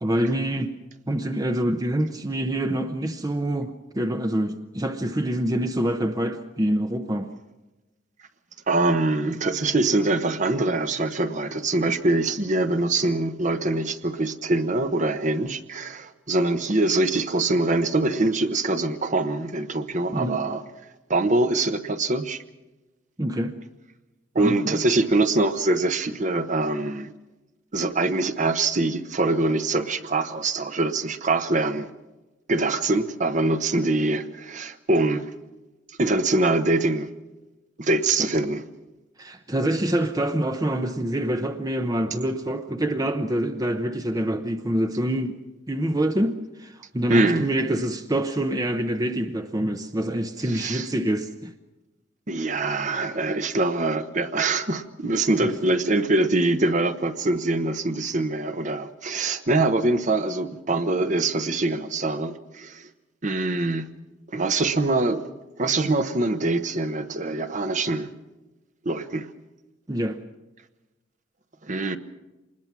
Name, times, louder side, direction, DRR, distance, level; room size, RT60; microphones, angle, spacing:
voice 1, 0.0-0.7 1.1-7.3 20.1-20.4 23.2-23.5 24.4-24.8 39.2-45.4 45.7-51.5 55.4-55.5 69.9-70.2, right 1 dB, 20° right, 0.8 m, -26 dB
voice 2, 8.7-20.6 21.1-22.4 24.3-27.1 27.7-31.9 32.5-35.2 36.0-37.1 37.8-38.7 47.1-47.5 50.5-50.9 52.3-62.9 63.2-63.9 64.3-65.3 65.6-68.1 68.8-69.3 71.6-72.0, right 2 dB, 40° right, 1.1 m, -24 dB
25.5 x 20.5 x 6.0 m
head